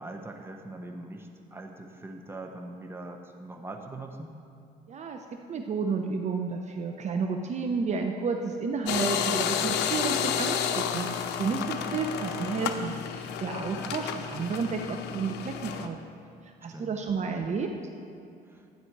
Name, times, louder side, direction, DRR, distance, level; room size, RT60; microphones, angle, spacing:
voice 1, 0.0-4.3 13.6-14.0 16.7-17.2 18.5-18.7, right 2 dB, 15° right, 3 dB, 1.1 m, -42 dB
voice 2, 4.9-5.2 5.5-16.0 16.6-17.7, right 5 dB, 40° right, 4 dB, 0.8 m, -31 dB
sound 1, 8.9-15.9, left 8 dB, 85° left, 0.7 m, -31 dB
12.0 x 9.3 x 4.7 m, 2.6 s
cardioid pair, 110°, 17 cm